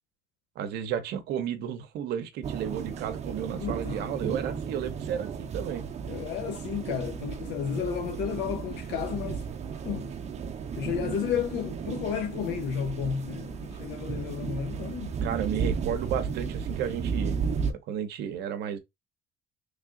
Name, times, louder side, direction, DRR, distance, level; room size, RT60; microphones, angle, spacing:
voice 1, 0.6-5.9 15.2-17.4 17.7-18.8, right 9 dB, 80° right, 0.7 m, -33 dB
sound 1, 2.4-17.7, right 6 dB, 40° right, 0.6 m, -34 dB
voice 2, 3.6-4.4 6.0-9.5 9.8-10.1 10.7-15.2, left 8 dB, 85° left, 0.6 m, -32 dB
3.3 x 2.4 x 3.6 m
cardioid pair, 110°, 17 cm